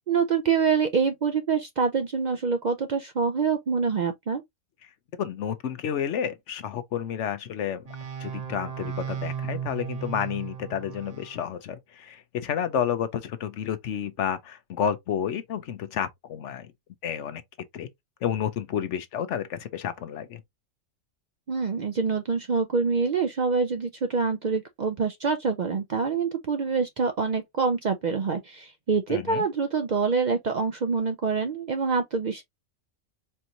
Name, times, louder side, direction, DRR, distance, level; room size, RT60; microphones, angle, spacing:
voice 1, 0.1-4.4 21.5-32.4, right 5 dB, 70° right, 0.4 m, -26 dB
voice 2, 5.2-7.8 8.2-16.7 17.0-17.4 17.7-17.9 18.2-20.4 29.1-29.4, left 9 dB, 65° left, 1.0 m, -30 dB
sound 1, 7.9-11.5, right 8 dB, 35° right, 0.7 m, -35 dB
4.4 x 2.9 x 2.5 m
omnidirectional pair, 1.4 m